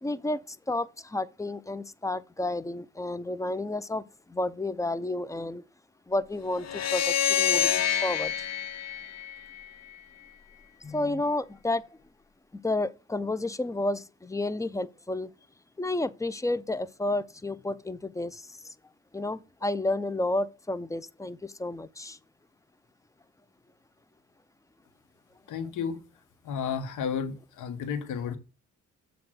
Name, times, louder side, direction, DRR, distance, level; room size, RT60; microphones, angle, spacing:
voice 1, 0.0-5.6 6.1-8.3 10.8-11.9 12.5-15.3 15.8-18.7 19.1-22.2, left 2 dB, 10° left, 0.5 m, -31 dB
sound 1, 6.6-9.9, left 9 dB, 60° left, 1.0 m, -27 dB
voice 2, 25.5-26.0 26.4-28.4, left 7 dB, 85° left, 1.4 m, -32 dB
7.5 x 3.5 x 6.3 m
cardioid pair, 90°, 30 cm